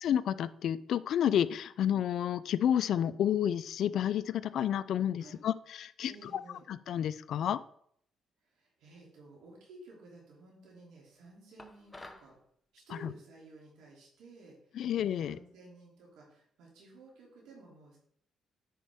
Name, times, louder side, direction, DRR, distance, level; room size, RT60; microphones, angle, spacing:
voice 1, 0.0-6.1 6.7-7.6 13.0-13.1 14.7-15.4, left 10 dB, 70° left, 16 dB, 0.3 m, -30 dB
voice 2, 5.2-5.5 6.1-6.6 8.5-12.3 12.7-14.7 15.2-18.0, right 2 dB, 85° right, -3 dB, 2.8 m, -54 dB
sound 1, 11.6-12.3, left 2 dB, 15° left, 0.8 m, -49 dB
9.2 x 5.2 x 3.5 m, 0.68 s
cardioid pair, 90°, 0 cm